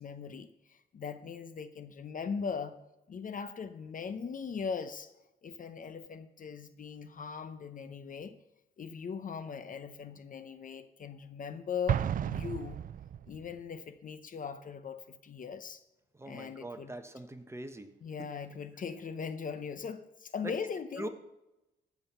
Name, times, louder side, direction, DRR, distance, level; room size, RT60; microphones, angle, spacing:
voice 1, 0.0-2.8 3.1-5.1 5.4-8.4 8.8-12.8 13.3-15.8 16.2-17.0 18.0-21.1, left 6 dB, 40° left, 11 dB, 0.8 m, -40 dB
Explosion, 11.9-13.5, right 9 dB, 45° right, 0.4 m, -33 dB
voice 2, 16.2-17.9 20.4-20.5 21.0-21.1, right 1 dB, 15° right, 8 dB, 1.1 m, -41 dB
14.0 x 6.2 x 5.6 m, 0.96 s
cardioid pair, 90°, 20 cm